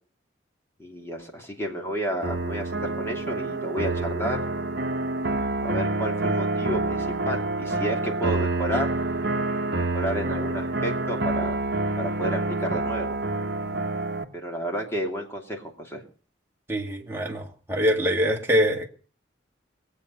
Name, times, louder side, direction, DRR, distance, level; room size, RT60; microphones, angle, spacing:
voice 1, 0.8-4.4 5.6-8.9 9.8-11.6 12.0-13.2 14.3-16.0, equal, 15° left, 2.7 m, -31 dB
sound 1, 2.2-14.2, right 2 dB, 55° right, 1.1 m, -27 dB
voice 2, 16.7-18.9, equal, 10° right, 1.9 m, -24 dB
22.0 x 8.3 x 5.7 m
head